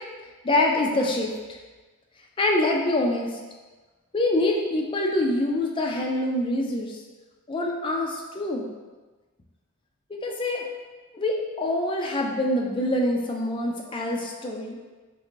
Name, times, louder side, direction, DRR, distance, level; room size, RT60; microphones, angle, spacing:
voice 1, 0.4-1.3 2.4-3.3 4.1-7.0 7.5-8.7 10.1-10.6 11.1-14.8, left 1 dB, 25° left, 0 dB, 0.4 m, -25 dB
3.8 x 2.5 x 3.0 m, 1.3 s
head